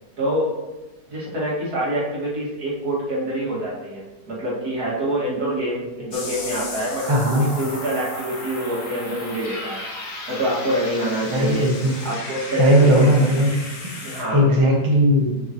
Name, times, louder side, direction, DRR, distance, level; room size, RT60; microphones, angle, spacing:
voice 1, 0.2-0.5 1.1-9.8 10.3-11.7 12.0-13.2 14.0-14.5, right 1 dB, 55° right, -7 dB, 2.7 m, -26 dB
sound 1, 6.1-14.2, left 2 dB, 50° left, 1.4 m, -34 dB
voice 2, 7.0-7.4 11.3-12.0 12.6-13.5 14.3-15.4, equal, 25° right, -1 dB, 0.7 m, -17 dB
7.2 x 6.1 x 3.1 m, 1.1 s
omnidirectional pair, 1.9 m